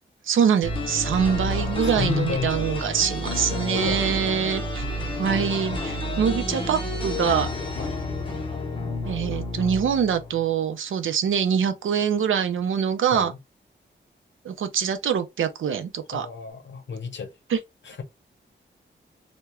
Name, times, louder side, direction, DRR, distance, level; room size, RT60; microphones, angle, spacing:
voice 1, 0.3-4.8 5.2-7.5 9.0-13.3 14.4-16.3 17.5-17.6, right 7 dB, 90° right, 0.5 m, -24 dB
sound 1, 0.6-10.5, left 1 dB, 25° left, 0.6 m, -30 dB
voice 2, 1.8-2.6 3.7-4.9 7.8-8.0 13.1-13.4 16.1-17.4 17.8-18.0, left 5 dB, 65° left, 0.7 m, -32 dB
2.3 x 2.2 x 2.8 m
wide cardioid pair, 170°, 20 cm